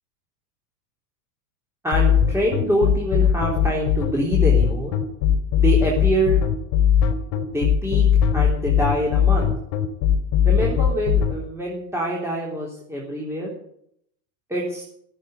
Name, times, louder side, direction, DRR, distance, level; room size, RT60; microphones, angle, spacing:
voice 1, 1.8-4.9 5.6-6.4 7.5-8.1 8.3-9.5 10.5-13.5 14.5-14.8, equal, 5° right, -4 dB, 3.6 m, -25 dB
sound 1, 1.9-11.3, left 9 dB, 50° left, 3.4 m, -18 dB
16.5 x 8.6 x 8.3 m, 0.70 s
supercardioid pair, 125°, 49 cm